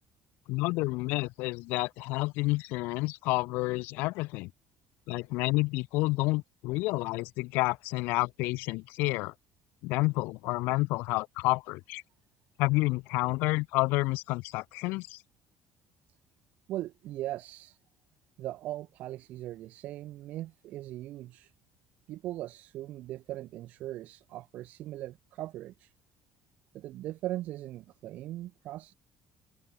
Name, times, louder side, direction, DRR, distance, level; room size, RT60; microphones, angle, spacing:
voice 1, 0.5-4.5 5.1-9.3 9.8-12.0 12.6-15.2, left 23 dB, 85° left, 1.6 m, -29 dB
voice 2, 16.7-17.8 18.4-21.5 22.1-25.9 26.7-28.9, right 14 dB, 55° right, 2.8 m, -39 dB
cardioid pair, 170°, 3 cm